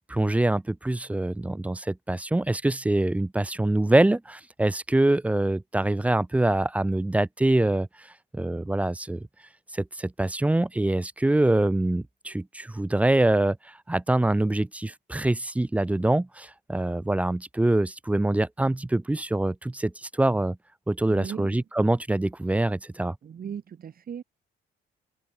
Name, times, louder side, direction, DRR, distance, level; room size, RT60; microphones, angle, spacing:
voice 1, 0.0-8.1 8.3-9.3 9.7-20.6 20.9-23.2, right 1 dB, 5° right, 0.3 m, -24 dB
voice 2, 21.1-21.6 23.2-24.2, right 8 dB, 50° right, 1.6 m, -37 dB
cardioid pair, 90°, 20 cm